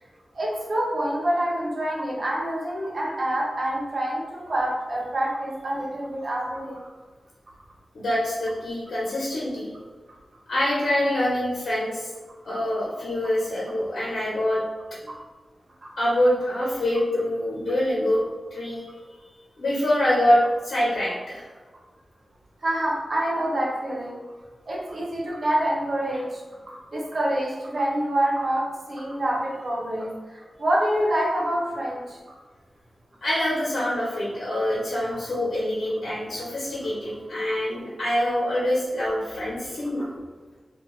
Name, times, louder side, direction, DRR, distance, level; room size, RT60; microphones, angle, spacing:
voice 1, 0.3-6.8 15.1-15.2 15.8-15.9 22.6-24.2 24.7-32.4 36.8-36.9, right 1 dB, 55° right, -4 dB, 1.0 m, -27 dB
voice 2, 7.9-9.7 10.5-12.1 12.4-14.6 16.0-18.2 18.5-18.8 19.6-21.4 33.2-40.1, left 1 dB, 75° left, -7 dB, 0.9 m, -25 dB
2.7 x 2.5 x 3.8 m, 1.3 s
wide cardioid pair, 135°, 0 cm